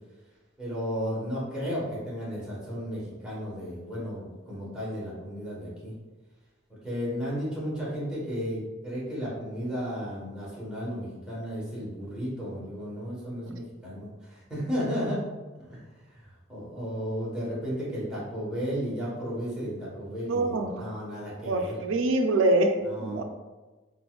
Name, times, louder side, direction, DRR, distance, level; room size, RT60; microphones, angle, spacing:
voice 1, 0.6-5.9 6.8-15.2 15.6-15.8 16.1-21.8 22.8-23.2, equal, 5° right, -8 dB, 1.1 m, -34 dB
voice 2, 20.3-20.8 21.4-22.8 23.0-23.2, right 2 dB, 75° right, 5 dB, 0.4 m, -25 dB
3.9 x 2.4 x 2.3 m, 1.2 s
head